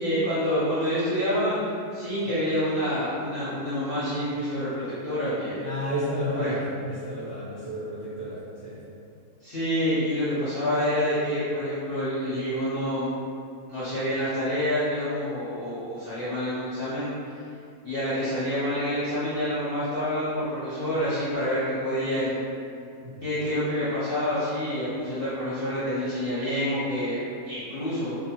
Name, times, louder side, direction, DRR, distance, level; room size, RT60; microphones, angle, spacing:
voice 1, 0.0-1.6 1.9-5.6 6.3-6.5 9.4-13.1 13.7-17.3 17.8-22.4 23.2-28.2, equal, 55° left, -13 dB, 0.6 m, -27 dB
voice 2, 5.6-8.8 23.0-23.2, equal, 45° right, -14 dB, 0.6 m, -32 dB
2.6 x 2.1 x 2.8 m, 2.5 s
omnidirectional pair, 1.7 m